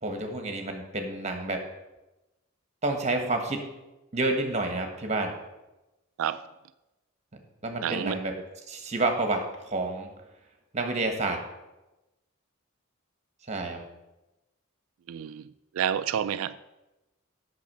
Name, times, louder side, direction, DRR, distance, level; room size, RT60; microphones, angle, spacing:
voice 1, 0.0-1.6 2.8-3.6 4.1-5.4 7.6-8.3 8.7-10.1 10.7-11.4 13.5-13.8, right 2 dB, 35° right, 5 dB, 1.3 m, -29 dB
voice 2, 7.8-8.2 15.1-15.5 15.7-16.6, right 9 dB, 80° right, 14 dB, 0.3 m, -29 dB
8.4 x 6.1 x 6.1 m, 1.0 s
head